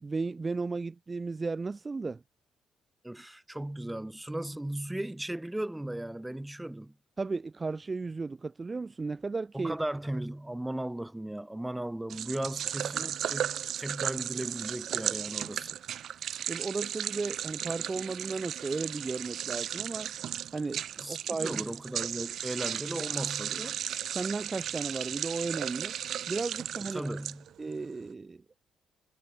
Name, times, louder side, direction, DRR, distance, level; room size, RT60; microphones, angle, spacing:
voice 1, 0.0-2.2 7.2-9.7 16.4-20.1 20.5-20.8 21.1-21.6 24.1-25.9 26.3-27.0 27.6-28.4, right 3 dB, 25° right, 0.7 m, -34 dB
voice 2, 3.0-6.9 9.5-15.8 21.0-23.8 26.9-27.4, right 1 dB, 10° right, 1.5 m, -36 dB
sound 1, 12.1-27.7, right 10 dB, 70° right, 1.0 m, -35 dB
cardioid pair, 90°, 0 cm